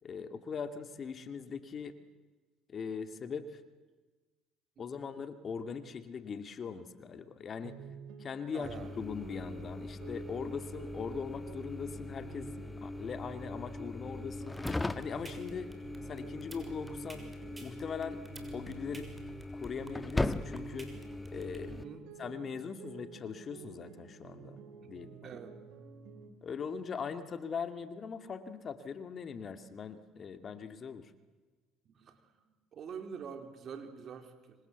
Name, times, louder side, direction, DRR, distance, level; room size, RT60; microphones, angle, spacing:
voice 1, 0.0-2.0 2.7-3.6 4.8-7.8 8.2-8.7 9.0-12.5 12.8-14.6 14.9-15.7 16.1-17.3 17.6-18.2 18.5-19.1 19.5-20.9 21.3-21.8 22.2-24.6 24.9-25.2 26.4-31.1, left 6 dB, 45° left, 9 dB, 2.3 m, -40 dB
sound 1, 7.6-19.5 19.8-26.3, right 6 dB, 75° right, 4.2 m, -51 dB
voice 2, 8.5-9.0 18.2-18.3 21.7-22.1 24.8-25.6 31.9-34.6, right 6 dB, 50° right, 6 dB, 3.9 m, -47 dB
sound 2, 8.6-21.8, left 2 dB, 15° left, 1.5 m, -40 dB
sound 3, 14.3-21.6, right 2 dB, 20° right, 6.2 m, -50 dB
26.5 x 25.0 x 8.3 m, 1.3 s
supercardioid pair, 75°, 0 cm